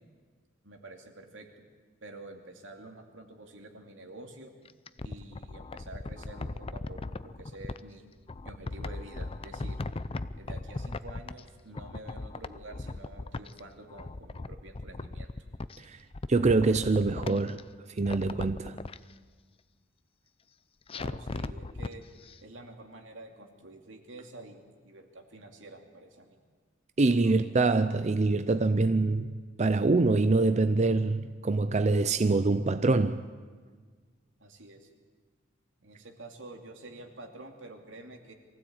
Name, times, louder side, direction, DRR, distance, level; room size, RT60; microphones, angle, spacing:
voice 1, 0.6-1.5 2.0-4.5 5.0-8.1 8.4-9.8 10.4-15.3 20.9-22.0 22.4-26.4 27.2-27.6 34.4-34.9 35.8-38.3, right 2 dB, 85° right, 2.6 m, -48 dB
sound 1, 4.6-7.8 8.3-11.5 11.7-13.6 13.9-15.8 16.1-17.6 18.0-19.0 20.9-21.9 22.3-22.4, left 2 dB, 30° left, 0.5 m, -38 dB
voice 2, 16.3-17.6 17.9-18.8 27.0-29.3 29.6-33.3, right 3 dB, 35° right, 0.5 m, -25 dB
23.5 x 15.5 x 8.8 m
head